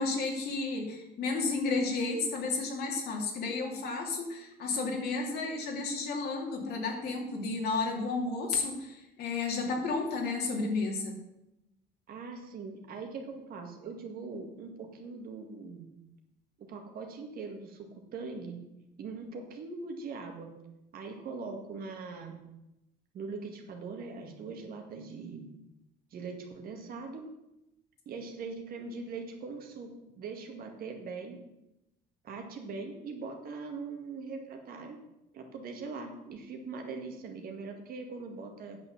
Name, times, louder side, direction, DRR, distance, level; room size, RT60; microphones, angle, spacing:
voice 1, 0.0-11.2, left 3 dB, 70° left, 1 dB, 2.6 m, -32 dB
voice 2, 12.1-15.9 16.6-18.6 19.0-20.5 20.9-22.4 23.1-25.5 26.1-27.3 28.1-31.4 32.2-35.0 35.3-38.8, right 4 dB, 60° right, 3 dB, 2.0 m, -41 dB
9.0 x 6.1 x 7.1 m, 0.93 s
cardioid pair, 110°, 17 cm